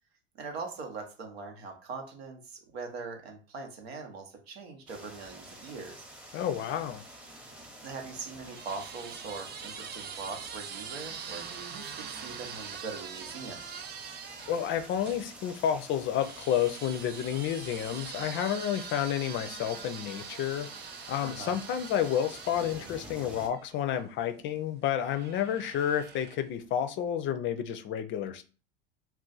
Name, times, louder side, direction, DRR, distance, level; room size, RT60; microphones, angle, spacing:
voice 1, 0.4-6.1 7.8-13.6 21.2-21.6, right 4 dB, 85° right, 0.9 m, -41 dB
sound 1, 4.9-23.5, right 1 dB, 5° right, 0.8 m, -49 dB
voice 2, 6.3-7.0 14.5-20.7 21.1-28.4, left 9 dB, 40° left, 0.4 m, -30 dB
sound 2, 7.8-15.2 16.2-24.1 25.0-26.6, right 7 dB, 35° right, 0.5 m, -44 dB
2.4 x 2.2 x 3.9 m
hypercardioid pair, 90°, 30 cm